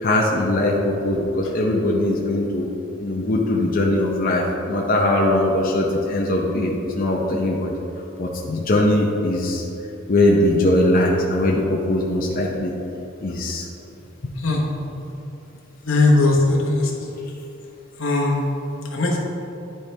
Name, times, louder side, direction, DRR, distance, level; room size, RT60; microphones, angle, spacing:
voice 1, 0.0-2.7 3.0-7.7 8.2-9.6 10.1-12.7 13.2-13.6 14.2-14.3 15.0-15.1, left 1 dB, 45° left, -2 dB, 0.7 m, -20 dB
voice 2, 15.8-17.1 18.0-18.4 18.9-19.2, left 2 dB, 90° left, -2 dB, 1.2 m, -19 dB
10.5 x 4.4 x 3.3 m, 3.0 s
head